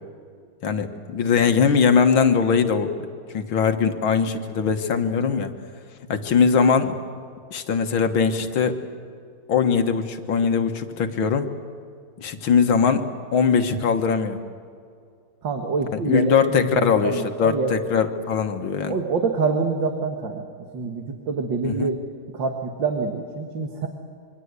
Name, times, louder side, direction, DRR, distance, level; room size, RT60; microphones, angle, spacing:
voice 1, 0.6-2.9 3.3-5.5 6.1-7.0 7.5-8.8 9.5-11.5 12.2-13.1 13.3-14.4 15.9-19.0 21.6-21.9, left 6 dB, 70° left, 7 dB, 2.2 m, -21 dB
voice 2, 15.4-17.7 18.9-20.5 20.7-22.0 22.3-23.9, right 4 dB, 60° right, 4 dB, 2.3 m, -26 dB
26.5 x 24.0 x 8.2 m, 2.3 s
omnidirectional pair, 2.4 m